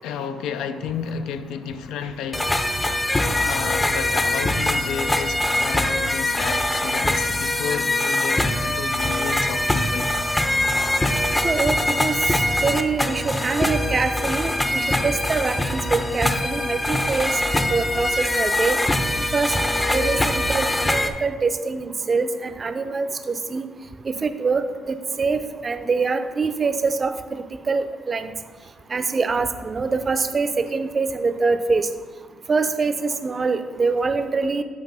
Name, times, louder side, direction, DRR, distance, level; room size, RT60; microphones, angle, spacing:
voice 1, 0.0-10.1, left 7 dB, 90° left, 0.4 m, -32 dB
sound 1, 2.3-21.1, left 1 dB, 15° left, 0.5 m, -23 dB
voice 2, 11.4-12.2 12.6-17.3 17.7-18.8 19.3-19.5 19.9-23.6 24.1-24.6 25.2-28.3 28.9-31.9 32.5-34.6, right 4 dB, 35° right, 0.5 m, -24 dB
7.9 x 3.1 x 5.5 m
cardioid pair, 90°, 0 cm